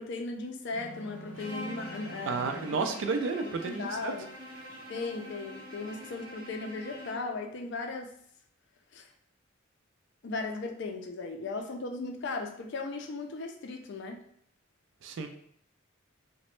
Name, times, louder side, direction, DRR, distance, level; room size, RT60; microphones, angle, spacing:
voice 1, 0.0-2.5 3.6-4.3 4.9-8.1 8.9-9.1 10.2-14.2, left 3 dB, 60° left, 4 dB, 0.4 m, -37 dB
sound 1, 0.7-3.0, right 2 dB, 20° left, 1.5 m, -46 dB
Bowed string instrument, 1.3-7.4, equal, 85° right, 0.8 m, -45 dB
voice 2, 2.3-4.1 15.0-15.3, right 4 dB, 65° right, 6 dB, 0.4 m, -31 dB
2.9 x 2.1 x 3.0 m, 0.68 s
head